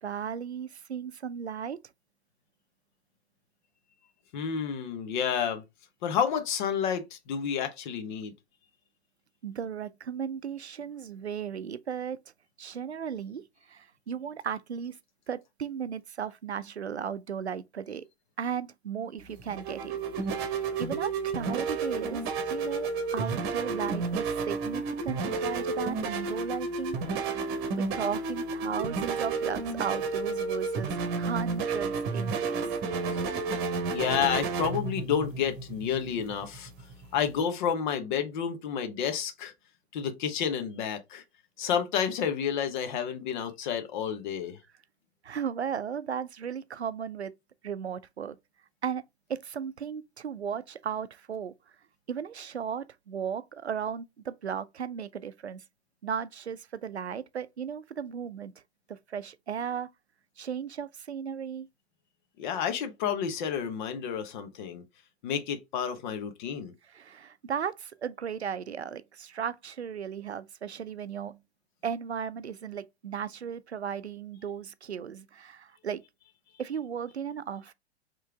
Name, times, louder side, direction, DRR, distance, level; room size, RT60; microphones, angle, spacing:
voice 1, 0.0-1.8 9.4-12.2 12.6-13.4 13.7-15.0 15.3-18.1 18.4-20.0 20.5-27.0 27.8-32.7 45.2-47.3 47.6-48.4 48.8-49.0 49.3-51.5 52.1-55.6 56.0-58.5 58.9-59.9 60.4-61.7 66.9-71.4 71.8-76.0 76.6-77.7, right 7 dB, 85° right, 0.5 m, -36 dB
voice 2, 4.3-5.6 6.0-8.3 33.1-33.2 33.9-36.7 37.1-39.5 39.9-41.2 41.6-44.6 62.4-64.8 65.2-66.7, left 8 dB, 45° left, 1.0 m, -30 dB
sound 1, 19.2-37.4, right 4 dB, 30° right, 1.1 m, -31 dB
4.7 x 3.1 x 3.5 m
figure-of-eight pair, 100°, 32 cm